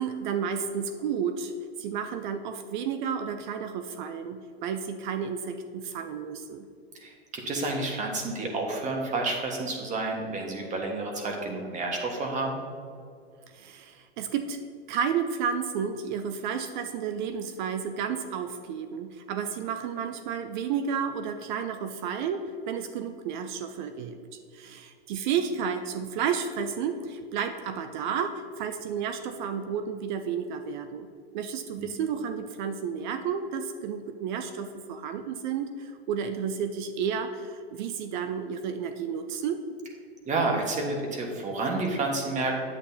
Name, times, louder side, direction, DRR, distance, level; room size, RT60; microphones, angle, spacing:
voice 1, 0.0-1.5 1.8-6.7 13.5-14.6 14.9-24.2 24.5-31.1 31.3-39.6, right 7 dB, 50° right, 8 dB, 0.5 m, -32 dB
voice 2, 6.9-12.6 31.8-31.9 40.2-42.6, right 2 dB, 25° right, 1 dB, 1.4 m, -30 dB
8.8 x 8.0 x 2.8 m, 2.3 s
hypercardioid pair, 125°, 30 cm